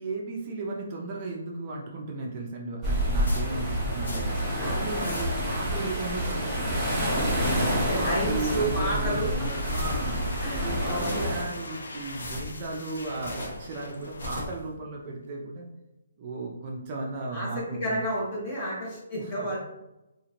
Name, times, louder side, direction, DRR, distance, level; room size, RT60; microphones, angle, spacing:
voice 1, 0.0-6.9 7.9-15.7 16.2-18.0 19.2-19.5, right 3 dB, 30° right, -2 dB, 0.4 m, -35 dB
sound 1, 2.8-11.4, equal, 5° left, 0.9 m, -28 dB
sound 2, 3.2-4.5 4.8-5.6 6.0-6.8 7.2-7.8 8.2-8.9 9.3-10.3 10.8-11.6 12.0-13.7 14.0-14.7, left 2 dB, 70° left, 0.9 m, -39 dB
voice 2, 7.3-9.3 10.4-11.2 17.3-19.6, right 1 dB, 25° left, -5 dB, 1.2 m, -31 dB
sound 3, 9.0-14.7, left 2 dB, 85° left, 0.5 m, -42 dB
2.7 x 2.4 x 2.9 m, 0.95 s
hypercardioid pair, 165°, 0 cm